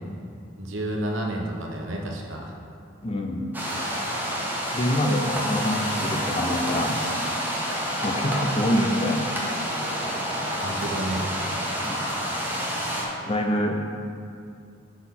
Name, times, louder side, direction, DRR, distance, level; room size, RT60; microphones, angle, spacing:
voice 1, 0.6-2.6 10.6-11.2, right 1 dB, 75° right, 0 dB, 0.9 m, -30 dB
voice 2, 3.0-3.5 4.7-7.0 8.0-9.3 11.8-12.0 13.3-14.0, left 1 dB, 30° left, 3 dB, 0.5 m, -25 dB
sound 1, 3.5-13.1, equal, 10° right, 0.8 m, -28 dB
5.8 x 4.2 x 5.6 m, 2.4 s
head